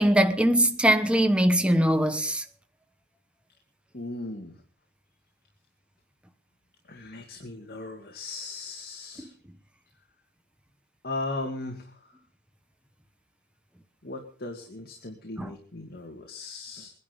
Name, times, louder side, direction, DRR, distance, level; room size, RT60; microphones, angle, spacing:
voice 1, 0.0-2.4 9.2-9.3 15.4-15.5, right 1 dB, 5° right, 1.0 m, -22 dB
voice 2, 3.9-4.5 6.9-9.3 11.0-11.8 14.0-16.9, left 2 dB, 50° left, 2.2 m, -37 dB
22.0 x 11.0 x 5.2 m
head